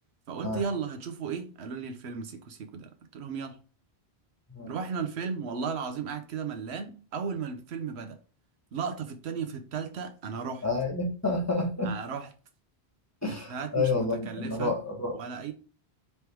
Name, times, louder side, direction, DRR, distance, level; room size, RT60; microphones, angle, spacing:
voice 1, 0.3-3.6 4.7-8.2 8.7-10.7 11.8-12.3 13.3-14.7 15.1-15.5, right 6 dB, 85° right, 1.0 m, -35 dB
voice 2, 10.6-11.9 13.2-15.2, left 3 dB, 15° left, 1.1 m, -29 dB
3.4 x 3.2 x 4.4 m
omnidirectional pair, 1.1 m